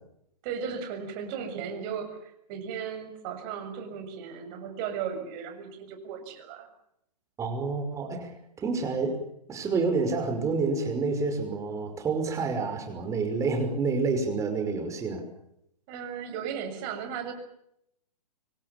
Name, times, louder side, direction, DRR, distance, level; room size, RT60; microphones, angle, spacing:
voice 1, 0.4-6.7 15.9-17.3, right 7 dB, 30° right, 7 dB, 6.9 m, -36 dB
voice 2, 7.4-9.2 9.5-15.2, right 4 dB, 15° right, 6 dB, 5.7 m, -28 dB
26.0 x 24.5 x 7.1 m, 0.77 s
figure-of-eight pair, 125°, 21 cm